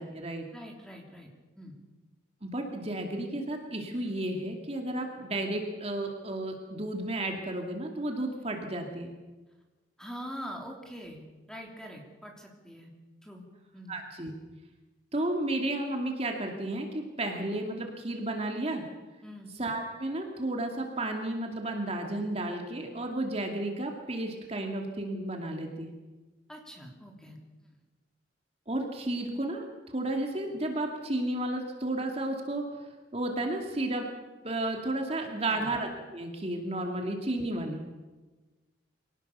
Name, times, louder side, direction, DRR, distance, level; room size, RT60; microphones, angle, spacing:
voice 1, 0.0-0.4 2.4-9.1 13.9-14.3 15.1-18.8 19.6-25.9 28.7-32.6 33.1-34.0 34.4-37.8, right 1 dB, 30° right, 2 dB, 2.5 m, -32 dB
voice 2, 0.5-1.8 10.0-12.9 13.2-13.4 13.7-13.9 19.2-19.5 26.5-27.4 35.3-35.7, equal, 5° left, 1 dB, 3.2 m, -44 dB
25.0 x 18.0 x 6.8 m, 1.2 s
head